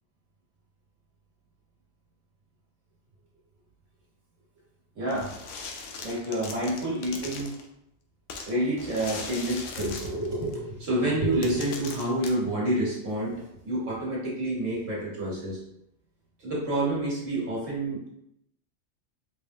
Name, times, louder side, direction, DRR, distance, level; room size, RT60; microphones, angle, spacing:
voice 1, 5.0-5.3 6.0-7.6 8.5-15.6 16.4-18.1, right 1 dB, 85° right, -5 dB, 1.9 m, -28 dB
sound 1, 5.1-7.7 8.3-10.5 11.2-11.3 11.4-12.3, left 4 dB, 80° left, 1.0 m, -39 dB
4.8 x 3.4 x 2.6 m, 0.79 s
omnidirectional pair, 1.3 m